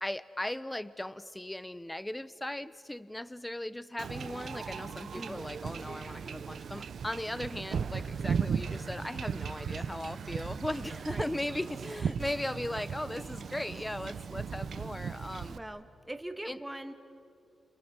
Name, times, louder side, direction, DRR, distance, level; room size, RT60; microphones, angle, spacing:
voice 1, 0.0-15.6 16.5-16.6, left 1 dB, 10° left, 16 dB, 0.6 m, -38 dB
Wind / Ocean / Boat Water vehicle, 4.0-15.6, right 6 dB, 60° right, 0.8 m, -37 dB
sound 1, 9.4-15.2, right 3 dB, 30° right, 3.3 m, -57 dB
voice 2, 15.5-16.9, right 1 dB, 10° right, 8 dB, 1.4 m, -42 dB
30.0 x 29.5 x 6.2 m, 2.6 s
wide cardioid pair, 140°, 0 cm